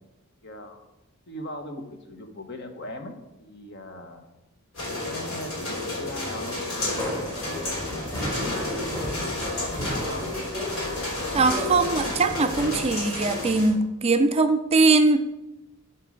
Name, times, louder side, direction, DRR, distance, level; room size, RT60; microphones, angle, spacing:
voice 1, 0.4-0.9 1.3-4.3 4.8-7.8 8.1-10.3, left 1 dB, 50° left, 5 dB, 1.1 m, -39 dB
sound 1, 4.7-13.7, left 2 dB, 75° left, 2.9 m, -32 dB
sound 2, 6.8-12.8, left 1 dB, 15° left, 2.1 m, -33 dB
voice 2, 11.3-15.2, right 3 dB, 30° right, 8 dB, 0.4 m, -21 dB
7.7 x 4.5 x 6.3 m, 0.96 s
head